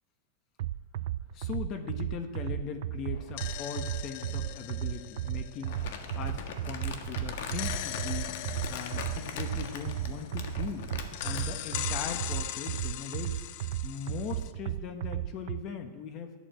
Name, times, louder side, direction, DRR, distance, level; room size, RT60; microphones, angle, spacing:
sound 1, 0.6-15.6, right 13 dB, 70° right, 0.4 m, -35 dB
voice 1, 1.3-5.8 6.1-8.3 8.7-10.9 11.2-13.4 13.8-16.3, left 7 dB, 40° left, 7 dB, 1.2 m, -39 dB
sound 2, 3.1-6.8 7.5-10.7 11.1-14.5, left 15 dB, 60° left, 0.5 m, -41 dB
Crumpling crinkling, 5.7-12.3, left 5 dB, 75° left, 1.6 m, -41 dB
11.0 x 8.5 x 7.6 m, 1.3 s
supercardioid pair, 135°, 0 cm